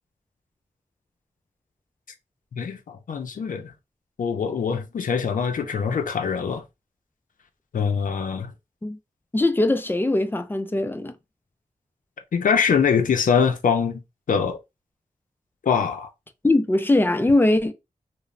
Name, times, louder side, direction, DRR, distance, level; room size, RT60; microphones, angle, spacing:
voice 1, 2.5-3.7 4.2-6.6 7.7-8.5 12.3-14.0 14.3-14.6 15.6-16.1, left 6 dB, 80° left, 0.5 m, -23 dB
voice 2, 9.3-11.1 16.4-17.7, left 2 dB, 15° left, 0.3 m, -21 dB
2.9 x 2.0 x 2.5 m
wide cardioid pair, 85°, 13 cm